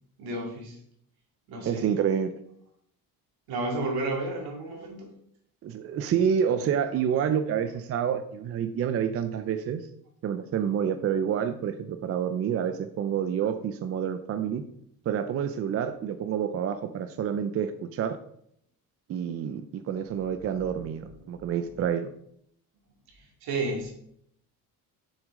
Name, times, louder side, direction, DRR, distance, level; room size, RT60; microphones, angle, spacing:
voice 1, 0.2-0.8 1.5-1.9 3.5-5.1 7.3-7.4 20.5-21.4 21.7-21.8 23.1-23.9, right 2 dB, 80° right, 0 dB, 2.5 m, -33 dB
voice 2, 1.6-2.3 5.6-9.9 10.2-14.6 15.1-18.2 19.1-22.1, right 8 dB, 40° right, 9 dB, 0.5 m, -28 dB
7.3 x 6.3 x 3.7 m, 0.69 s
cardioid pair, 155°, 36 cm